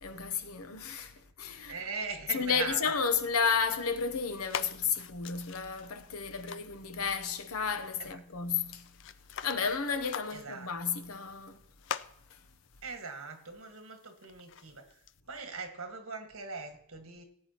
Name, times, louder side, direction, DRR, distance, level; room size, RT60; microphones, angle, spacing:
voice 1, 0.0-1.8 2.3-8.9 9.4-11.6 12.3-12.4, left 6 dB, 80° left, 0.8 m, -32 dB
voice 2, 1.7-2.9 8.0-8.2 10.3-10.7 12.8-15.0 15.3-17.2, right 5 dB, 70° right, 1.7 m, -40 dB
sound 1, 3.6-15.2, left 8 dB, 55° left, 0.4 m, -46 dB
18.0 x 8.6 x 3.0 m
head